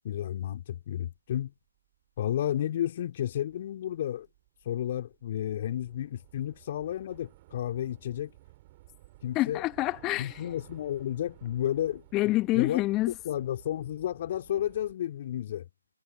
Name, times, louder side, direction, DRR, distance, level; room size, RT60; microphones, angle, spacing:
voice 1, 0.0-1.5 2.2-4.3 4.6-8.3 9.2-9.6 10.2-12.0 12.5-12.8 13.2-15.7, left 11 dB, 30° left, 3.1 m, -32 dB
Train / Subway metro underground, 1.6-1.7 1.9-14.9, right 18 dB, 25° right, 5.9 m, -56 dB
voice 2, 9.3-10.4 12.1-13.1, left 18 dB, 15° left, 2.4 m, -27 dB
figure-of-eight pair, 145°, 0 cm